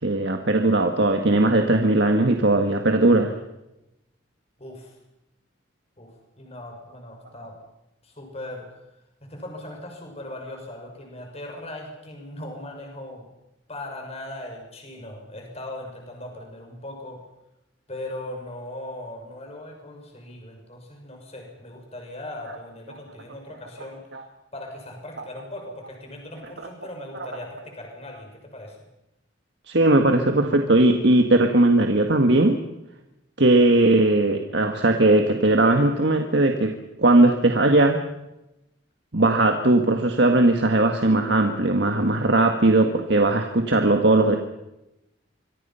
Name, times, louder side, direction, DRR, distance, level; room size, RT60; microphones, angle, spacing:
voice 1, 0.0-3.3 24.1-24.2 29.7-32.6 33.4-38.0 39.1-44.4, right 2 dB, 60° right, 4 dB, 1.8 m, -19 dB
voice 2, 4.6-5.0 6.0-7.6 8.0-8.7 9.2-13.3 13.7-17.2 17.9-24.0 24.5-28.8, left 1 dB, 35° left, 2 dB, 6.0 m, -39 dB
25.5 x 24.0 x 5.8 m, 0.92 s
head